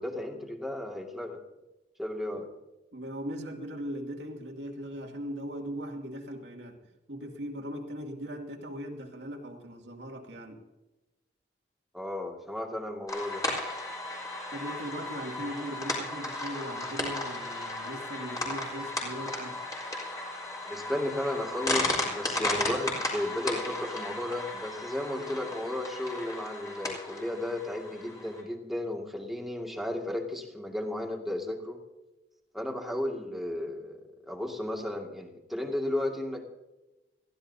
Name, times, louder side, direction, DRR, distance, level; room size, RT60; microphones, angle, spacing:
voice 1, 0.0-1.4 2.0-2.5 11.9-13.5 20.7-31.8 32.5-36.5, left 1 dB, ahead, 1 dB, 2.2 m, -34 dB
voice 2, 2.9-6.8 7.1-10.6 14.5-19.6, equal, 80° right, 1 dB, 2.5 m, -39 dB
sound 1, 13.1-28.4, left 2 dB, 20° left, 3.9 m, -35 dB
21.5 x 15.5 x 2.8 m, 1.0 s
head